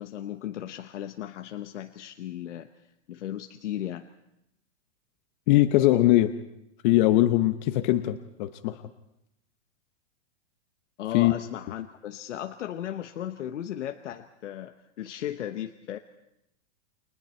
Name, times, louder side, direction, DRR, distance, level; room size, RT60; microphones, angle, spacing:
voice 1, 0.0-2.7 3.1-4.1 11.0-16.0, left 11 dB, 90° left, 7 dB, 1.1 m, -36 dB
voice 2, 5.5-6.3 6.8-8.8 11.1-11.3, left 15 dB, 45° left, 9 dB, 0.9 m, -21 dB
30.0 x 22.0 x 4.4 m, 0.83 s
supercardioid pair, 155°, 35 cm